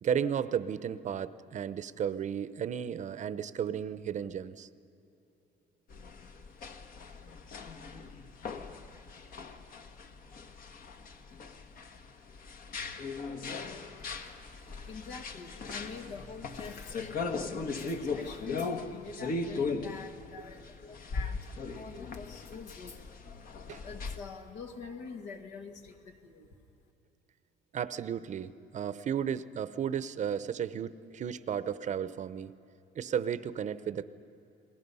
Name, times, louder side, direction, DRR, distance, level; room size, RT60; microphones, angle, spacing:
voice 1, 0.0-4.7 20.4-20.5 23.7-23.8 27.7-32.6 32.9-34.0, right 8 dB, 45° right, 14 dB, 0.7 m, -34 dB
sound 1, 5.9-24.2, left 4 dB, 55° left, 1.5 m, -39 dB
voice 2, 14.0-23.1 23.8-26.6, left 5 dB, 80° left, 4 dB, 2.1 m, -47 dB
29.5 x 21.0 x 5.5 m, 3.0 s
cardioid pair, 110°, 17 cm